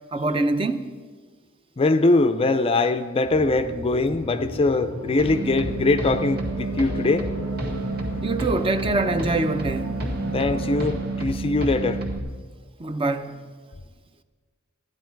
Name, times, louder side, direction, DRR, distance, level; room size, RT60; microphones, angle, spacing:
voice 1, 0.1-0.9 8.2-9.9 12.8-13.4, right 2 dB, 25° right, 0.6 m, -24 dB
voice 2, 1.8-7.3 10.3-12.0, left 2 dB, 30° left, 0.4 m, -22 dB
sound 1, 3.2-11.2, equal, 80° right, 2.9 m, -36 dB
sound 2, 5.2-12.2, right 2 dB, 50° right, 1.7 m, -29 dB
14.0 x 10.5 x 4.6 m
head